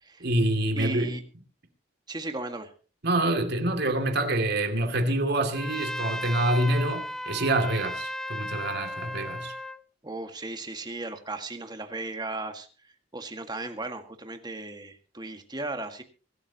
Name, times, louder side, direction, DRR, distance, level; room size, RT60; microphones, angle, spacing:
voice 1, 0.2-1.2 3.0-9.5, right 1 dB, 55° right, 2.5 m, -26 dB
voice 2, 0.8-1.2 2.1-2.7 10.0-12.7 13.1-16.0, right 2 dB, 20° right, 1.8 m, -36 dB
Trumpet, 5.5-9.8, left 1 dB, 5° left, 0.7 m, -35 dB
25.0 x 12.5 x 2.9 m
head